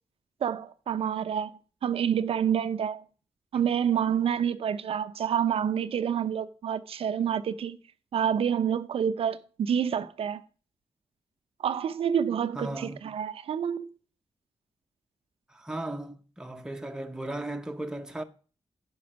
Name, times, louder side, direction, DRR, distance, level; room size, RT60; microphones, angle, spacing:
voice 1, 0.4-3.0 3.5-7.8 8.1-10.4 11.6-13.9, right 8 dB, 70° right, 0.6 m, -28 dB
voice 2, 12.5-13.1 15.5-18.2, right 1 dB, 5° right, 0.8 m, -36 dB
10.0 x 5.5 x 6.1 m
wide cardioid pair, 155°, 10 cm